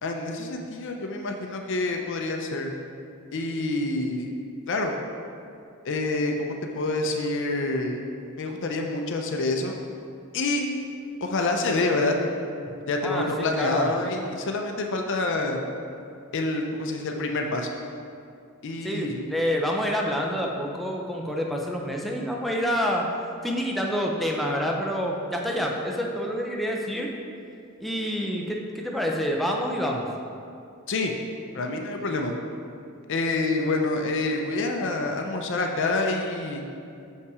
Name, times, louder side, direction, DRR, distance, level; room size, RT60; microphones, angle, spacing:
voice 1, 0.0-2.7 3.3-4.3 4.7-4.9 5.8-8.0 8.4-9.8 10.3-10.7 11.2-12.2 12.9-15.6 16.3-17.7 18.6-19.2 30.9-31.1 31.5-32.4 33.1-36.6, left 2 dB, 55° left, 2 dB, 0.6 m, -27 dB
voice 2, 13.0-13.9 18.8-23.1 23.4-27.1 27.8-30.1, equal, ahead, -1 dB, 0.6 m, -27 dB
6.6 x 5.6 x 4.8 m, 2.5 s
head